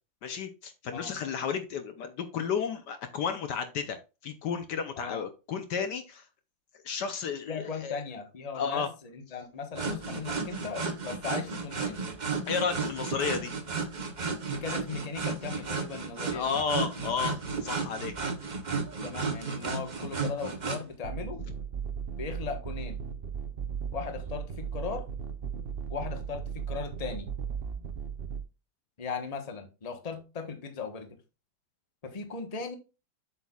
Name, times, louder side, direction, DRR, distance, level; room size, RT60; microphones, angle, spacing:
voice 1, 0.2-4.0 4.2-6.3 6.8-8.0 8.5-8.9 12.5-13.5 16.3-18.1 18.4-18.5, left 6 dB, 65° left, 8 dB, 1.3 m, -32 dB
voice 2, 7.5-12.0 14.4-16.6 17.7-17.8 19.0-21.4 22.2-23.0 23.9-25.0 25.9-27.3 29.0-31.1 32.0-32.8, left 5 dB, 25° left, 6 dB, 1.1 m, -38 dB
sound 1, 9.7-20.8, right 4 dB, 35° right, 0.8 m, -33 dB
sound 2, 21.0-28.4, right 7 dB, 70° right, 0.5 m, -36 dB
8.0 x 7.2 x 2.4 m, 0.29 s
omnidirectional pair, 2.1 m